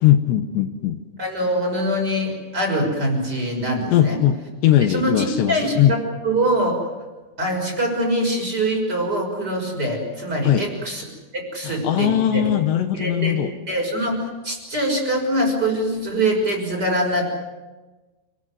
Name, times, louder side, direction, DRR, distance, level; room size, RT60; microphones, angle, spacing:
voice 1, 0.0-1.0 3.9-6.0 10.4-10.7 11.6-13.5, left 11 dB, 75° left, 8 dB, 3.2 m, -19 dB
voice 2, 1.2-4.2 4.9-5.8 6.2-6.8 7.4-11.0 11.3-12.4 12.9-13.4 13.7-17.3, right 1 dB, 20° right, 1 dB, 6.3 m, -23 dB
29.0 x 21.0 x 7.9 m, 1.2 s
omnidirectional pair, 5.3 m